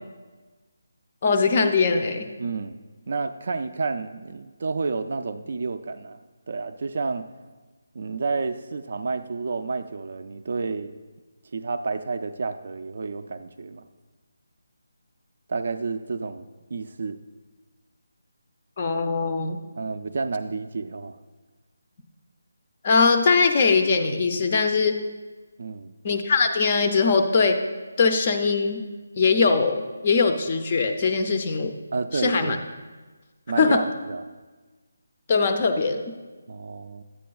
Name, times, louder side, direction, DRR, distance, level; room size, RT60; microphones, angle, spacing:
voice 1, 1.2-2.3 18.8-19.6 22.8-25.0 26.0-27.6 28.0-28.8 29.2-31.7 32.1-32.6 33.6-33.8 35.3-36.0, left 4 dB, 25° left, 6 dB, 0.4 m, -21 dB
voice 2, 2.4-2.8 3.1-6.2 6.5-7.3 7.9-10.9 11.5-13.8 15.5-17.2 19.8-21.2 25.6-25.9 31.9-32.6 33.5-34.2 36.5-37.0, right 4 dB, 45° right, 9 dB, 0.3 m, -30 dB
10.0 x 8.4 x 2.3 m, 1.3 s
hypercardioid pair, 175°, 0 cm